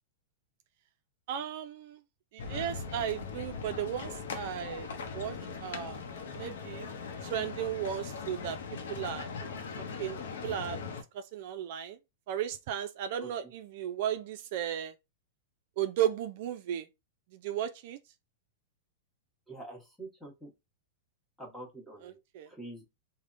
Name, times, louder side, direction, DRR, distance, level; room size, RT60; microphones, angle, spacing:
voice 1, 1.3-2.0 2.3-4.9 5.1-6.0 6.3-6.9 7.2-8.6 8.9-9.3 9.8-10.8 11.1-12.0 12.3-14.9 15.8-16.9 17.3-18.0 22.0-22.5, right 10 dB, 60° right, 0.3 m, -35 dB
sound 1, 2.4-11.0, left 5 dB, 75° left, 0.6 m, -40 dB
voice 2, 19.5-20.5 21.4-22.2 22.5-22.8, right 2 dB, ahead, 1.1 m, -45 dB
3.4 x 2.1 x 2.5 m
hypercardioid pair, 130°, 0 cm